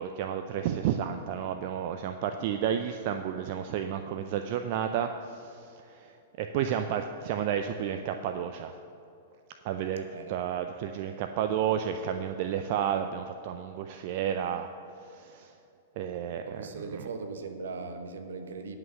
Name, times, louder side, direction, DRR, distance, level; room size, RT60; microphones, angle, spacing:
voice 1, 0.0-8.7 9.6-14.7 15.0-15.5 16.0-17.0, right 9 dB, 50° right, 7 dB, 0.5 m, -32 dB
voice 2, 10.1-10.6 16.4-18.8, right 4 dB, 70° right, 7 dB, 1.0 m, -39 dB
10.5 x 5.9 x 6.8 m, 2.7 s
figure-of-eight pair, 105°, 0 cm